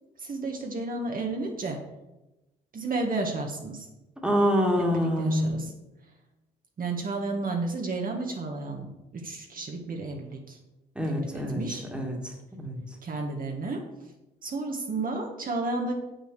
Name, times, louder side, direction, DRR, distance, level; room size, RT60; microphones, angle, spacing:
voice 1, 0.2-1.8 2.7-3.9 4.9-5.7 6.8-10.6 11.0-11.9 13.0-13.8 14.4-15.9, right 3 dB, 45° right, 2 dB, 1.6 m, -32 dB
voice 2, 4.2-5.5 11.0-11.6 11.9-12.8, equal, 5° right, 1 dB, 2.2 m, -26 dB
7.5 x 6.4 x 6.7 m, 0.98 s
cardioid pair, 90°, 20 cm